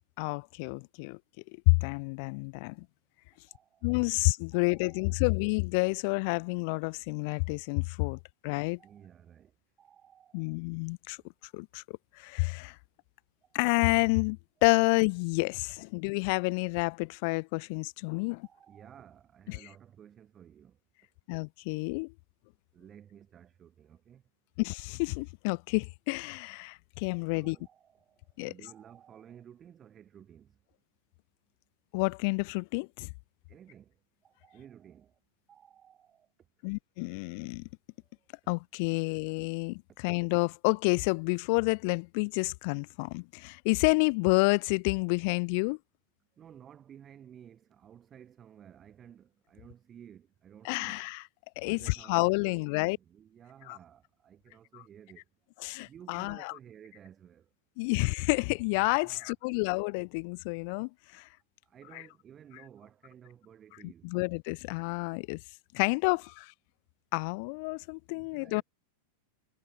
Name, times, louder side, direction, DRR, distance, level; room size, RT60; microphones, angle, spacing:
voice 1, 0.2-1.2 1.7-2.9 3.8-8.8 10.3-11.2 11.5-12.8 13.5-18.4 19.5-19.6 21.3-22.1 24.6-27.6 28.4-28.5 31.9-33.1 36.6-37.7 38.5-45.8 50.6-51.2 51.6-53.0 53.7-53.8 55.6-56.5 57.8-61.3 64.0-65.4 65.7-66.5 67.1-68.6, left 32 dB, 45° left, 0.3 m, -29 dB
voice 2, 3.5-3.9 4.5-5.3 8.6-9.5 9.8-10.6 13.4-13.5 18.4-20.8 22.7-24.2 27.3-30.6 33.5-33.9 34.2-35.2 35.5-36.3 46.4-51.1 51.7-55.2 55.8-57.5 58.9-59.3 61.6-64.1 66.1-66.3 68.1-68.6, right 9 dB, 25° right, 7.5 m, -54 dB
figure-of-eight pair, 90°, 0 cm